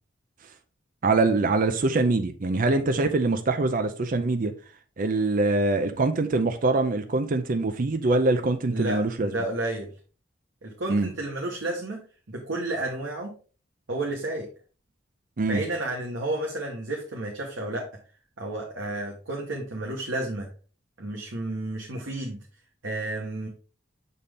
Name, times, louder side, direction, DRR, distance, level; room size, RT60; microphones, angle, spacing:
voice 1, 1.0-4.5 5.0-9.3 10.9-11.1 15.4-15.6, right 3 dB, 45° right, 0.5 m, -24 dB
voice 2, 8.7-9.9 10.6-12.0 12.3-13.3 13.9-14.5 15.4-17.9 18.4-20.5 21.0-22.4 22.8-23.5, right 2 dB, 90° right, 1.2 m, -31 dB
6.4 x 4.2 x 3.5 m
head